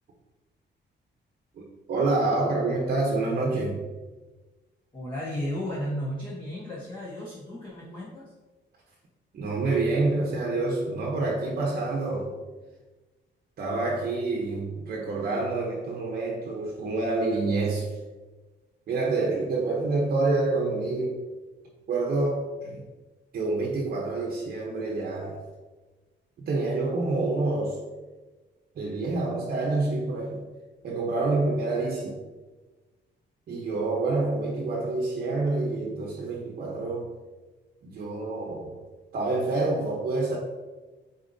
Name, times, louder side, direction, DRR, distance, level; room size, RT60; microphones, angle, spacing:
voice 1, 1.6-3.8 9.3-12.3 13.6-17.9 18.9-21.2 21.9-22.9 23.3-25.4 26.4-27.8 28.8-30.4 30.8-32.2 33.5-37.1 37.8-38.8 39.1-40.4, right 3 dB, 50° right, -1 dB, 0.8 m, -27 dB
voice 2, 4.9-8.2, equal, 25° left, -6 dB, 1.1 m, -34 dB
8.7 x 4.1 x 2.7 m, 1.2 s
wide cardioid pair, 165°, 19 cm